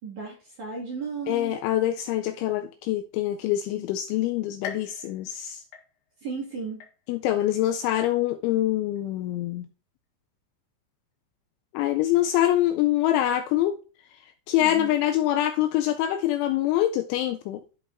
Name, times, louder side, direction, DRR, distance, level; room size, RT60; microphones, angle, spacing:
voice 1, 0.0-1.5 6.2-6.8 14.6-14.9, right 5 dB, 50° right, 2.6 m, -35 dB
voice 2, 1.3-5.6 7.1-9.7 11.7-13.8 14.5-17.6, left 13 dB, 85° left, 2.8 m, -25 dB
sound 1, 4.6-6.3 6.8-7.4 7.9-8.0 9.0-9.1, left 7 dB, 65° left, 2.9 m, -43 dB
13.0 x 5.2 x 2.5 m
omnidirectional pair, 5.8 m